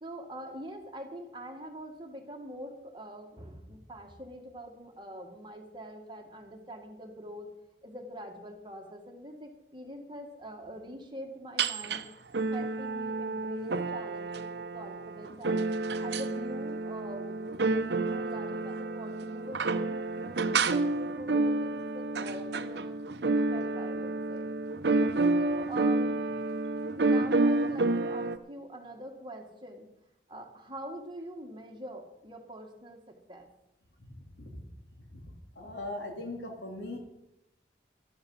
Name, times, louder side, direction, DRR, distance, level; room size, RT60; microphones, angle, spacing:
voice 1, 0.0-7.5 7.8-12.1 12.5-23.0 23.5-24.5 25.4-26.2 26.9-29.9 30.3-33.5, right 1 dB, 25° right, 3 dB, 1.8 m, -44 dB
sound 1, 11.6-12.0 12.3-28.4, right 3 dB, 75° right, 0.7 m, -29 dB
voice 2, 34.1-34.6 35.1-35.2 35.5-37.0, left 2 dB, 85° left, 2 dB, 3.2 m, -40 dB
12.5 x 12.5 x 5.6 m, 0.88 s
head